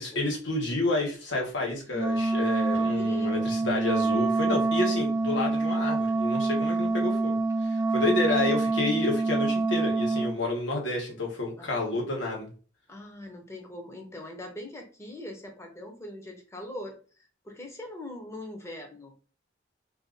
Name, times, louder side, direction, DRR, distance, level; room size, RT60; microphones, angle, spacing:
voice 1, 0.0-12.5, left 2 dB, 85° left, -1 dB, 1.2 m, -30 dB
Wind instrument woodwind instrument, 1.9-10.4, right 3 dB, 15° right, 0.3 m, -26 dB
voice 2, 2.7-3.5 6.7-7.1 8.0-8.3 11.6-11.8 12.9-19.3, left 1 dB, 15° left, 2 dB, 0.7 m, -42 dB
2.6 x 2.4 x 3.7 m, 0.37 s
head